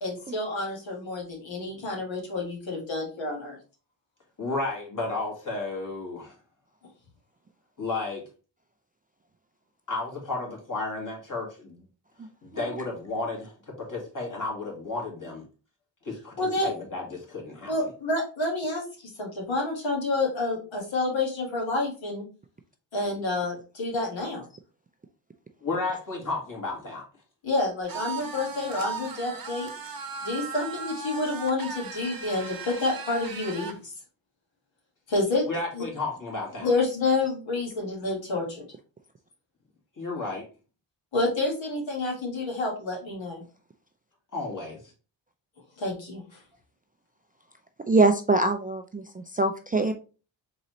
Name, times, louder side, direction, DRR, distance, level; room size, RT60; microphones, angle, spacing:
voice 1, 0.0-3.6 16.4-16.7 17.7-18.8 19.2-22.2 22.9-24.4 27.4-29.7 30.2-33.9 35.1-35.5 35.7-35.8 36.6-38.7 41.1-43.4 45.8-46.2, left 2 dB, 75° left, 0 dB, 1.9 m, -28 dB
voice 2, 4.4-6.3 7.8-8.2 9.9-11.8 12.4-13.5 13.9-15.4 16.1-16.3 16.6-17.7 25.6-27.0 35.5-36.7 40.0-40.4 44.3-44.8, left 3 dB, 45° left, -1 dB, 2.1 m, -32 dB
sound 1, 27.9-33.8, right 5 dB, 50° right, 0.9 m, -37 dB
voice 3, 47.9-49.9, right 3 dB, 20° right, 5 dB, 0.3 m, -23 dB
3.9 x 3.9 x 3.1 m, 0.35 s
cardioid pair, 75°, 46 cm